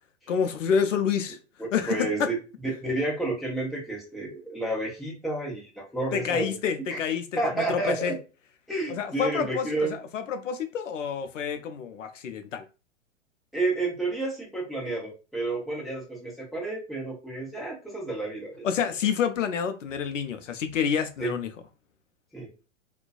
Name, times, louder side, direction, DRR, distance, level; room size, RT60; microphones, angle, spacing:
voice 1, 0.3-1.4 1.7-2.3 6.1-7.2 7.5-8.2 8.9-12.7 18.6-21.5, left 7 dB, 80° left, 0.5 m, -28 dB
voice 2, 1.9-2.4 2.6-6.6 6.9-7.0 7.4-8.1 8.7-10.0 13.5-18.8 21.2-21.3 22.3-22.5, right 2 dB, ahead, 0.7 m, -30 dB
2.4 x 2.2 x 2.4 m
hypercardioid pair, 110°, 37 cm